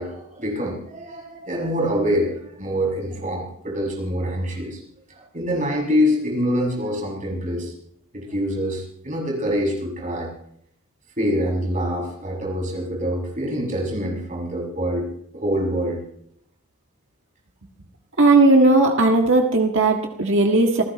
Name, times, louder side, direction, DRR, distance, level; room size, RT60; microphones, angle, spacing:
voice 1, 0.0-4.8 5.1-7.7 8.1-10.3 11.2-16.0, equal, 35° right, -2 dB, 6.5 m, -25 dB
voice 2, 18.2-20.8, right 2 dB, 60° right, 2 dB, 1.7 m, -16 dB
27.5 x 15.0 x 3.1 m, 0.71 s
head